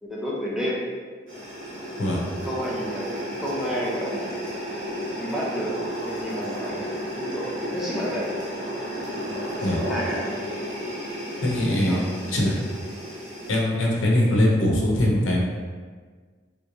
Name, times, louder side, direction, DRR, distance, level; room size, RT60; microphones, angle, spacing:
voice 1, 0.0-0.9 2.5-4.3 5.2-8.3 9.3-10.5 11.7-12.5, equal, ahead, -6 dB, 0.5 m, -31 dB
sound 1, 1.3-13.6, equal, 80° right, 1.0 m, -33 dB
voice 2, 11.4-12.0 12.3-12.5 13.5-15.4, left 1 dB, 85° left, -3 dB, 0.7 m, -21 dB
3.3 x 3.1 x 2.6 m, 1.5 s
head